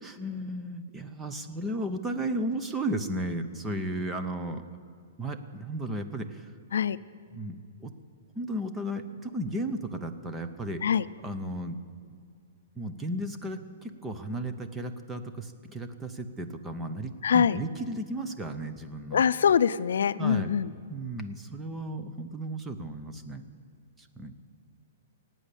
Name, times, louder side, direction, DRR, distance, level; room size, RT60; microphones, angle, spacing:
voice 1, 0.0-4.6 5.2-6.5 7.3-7.9 8.4-10.8 11.2-11.8 12.8-19.2 20.2-20.5 20.9-23.4 24.0-24.3, right 1 dB, 10° right, 7 dB, 0.6 m, -34 dB
voice 2, 17.2-17.6 19.1-20.7, left 7 dB, 75° left, 15 dB, 0.4 m, -23 dB
17.0 x 9.1 x 8.3 m, 2.2 s
hypercardioid pair, 170°, 0 cm